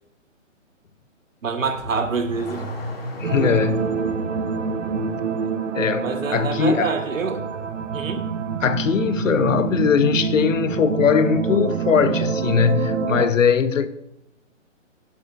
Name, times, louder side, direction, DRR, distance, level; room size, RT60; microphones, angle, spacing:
voice 1, 1.4-2.7 6.0-7.5 7.9-8.2, right 4 dB, 90° right, 1.5 m, -26 dB
Car / Accelerating revving vroom, 1.6-3.9, left 1 dB, 50° left, 2.6 m, -34 dB
voice 2, 3.2-4.0 5.0-5.2 5.7-6.9 8.6-13.9, left 7 dB, 75° left, 0.9 m, -20 dB
sound 1, 3.2-13.3, right 6 dB, 70° right, 1.1 m, -26 dB
11.5 x 11.0 x 2.6 m
hypercardioid pair, 175°, 38 cm